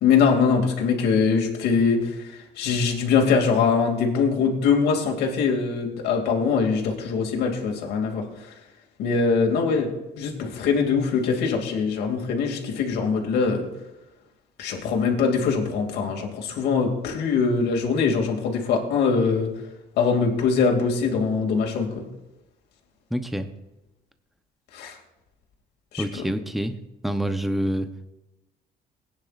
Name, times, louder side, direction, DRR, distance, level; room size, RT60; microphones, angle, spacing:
voice 1, 0.0-2.0 2.6-8.2 9.0-13.7 14.6-19.5 20.0-22.0 24.7-24.9 25.9-26.2, left 5 dB, 80° left, 1 dB, 2.6 m, -22 dB
voice 2, 23.1-23.5 26.0-26.8 27.0-28.1, equal, ahead, 8 dB, 0.8 m, -27 dB
19.0 x 9.7 x 2.5 m, 0.98 s
cardioid pair, 110°, 17 cm